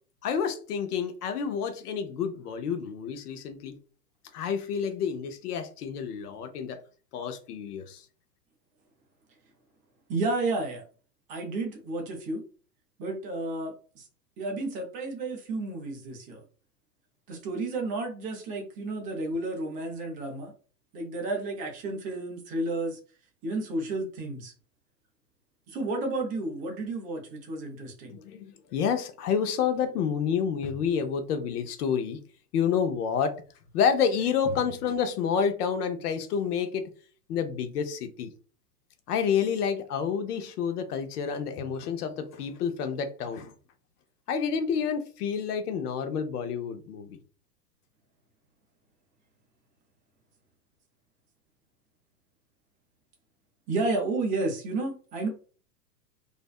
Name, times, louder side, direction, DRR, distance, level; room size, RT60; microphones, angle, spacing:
voice 1, 0.2-3.8 4.3-6.8 7.1-8.0 28.1-32.2 32.5-33.4 33.7-36.9 37.3-38.3 39.1-43.5 44.3-47.2, left 7 dB, 65° left, 0.7 m, -29 dB
voice 2, 10.1-10.8 11.3-12.4 13.0-14.1 14.4-16.4 17.3-20.5 20.9-23.0 23.4-24.5 25.7-28.2 53.7-55.3, right 2 dB, 20° right, 0.4 m, -31 dB
2.5 x 2.2 x 2.3 m
hypercardioid pair, 110°, 49 cm